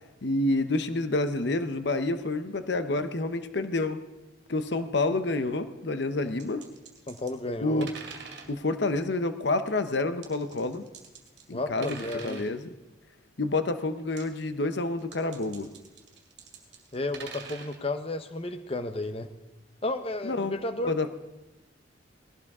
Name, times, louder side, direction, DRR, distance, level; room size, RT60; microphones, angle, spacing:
voice 1, 0.2-4.0 4.5-6.6 7.6-7.9 8.5-10.8 11.5-12.7 13.4-15.7 20.2-20.6 20.9-21.1, left 2 dB, 65° left, 10 dB, 0.8 m, -28 dB
sound 1, 6.4-7.4 7.8-8.6 10.2-11.5 11.8-12.5 14.0-14.4 15.0-17.8, right 5 dB, 60° right, 2.2 m, -44 dB
voice 2, 7.1-7.9 11.5-12.4 16.9-19.3 19.8-21.1, left 2 dB, 30° left, 9 dB, 0.8 m, -32 dB
19.5 x 16.5 x 3.7 m, 1.1 s
head